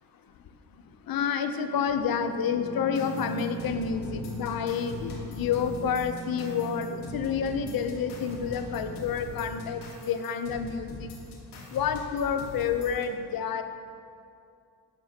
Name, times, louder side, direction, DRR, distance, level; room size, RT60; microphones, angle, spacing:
voice 1, 1.1-11.1 11.7-13.6, left 7 dB, 60° left, 9 dB, 0.7 m, -29 dB
sound 1, 1.5-9.9, right 1 dB, 5° right, 0.8 m, -41 dB
sound 2, 2.9-13.0, left 3 dB, 90° left, 1.5 m, -43 dB
11.0 x 8.3 x 2.9 m, 2.4 s
cardioid pair, 85°, 40 cm